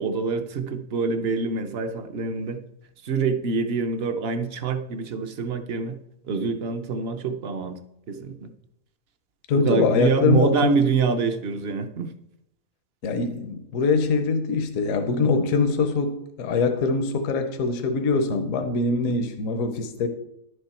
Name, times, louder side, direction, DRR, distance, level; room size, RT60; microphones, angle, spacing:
voice 1, 0.0-2.6 3.0-6.0 6.3-7.8 8.1-8.5 9.5-12.1 15.2-15.5 19.0-19.2, right 5 dB, 55° right, 9 dB, 0.9 m, -25 dB
voice 2, 9.5-10.8 13.0-20.1, left 4 dB, 70° left, 7 dB, 1.2 m, -23 dB
11.0 x 6.8 x 4.3 m, 0.82 s
omnidirectional pair, 1.4 m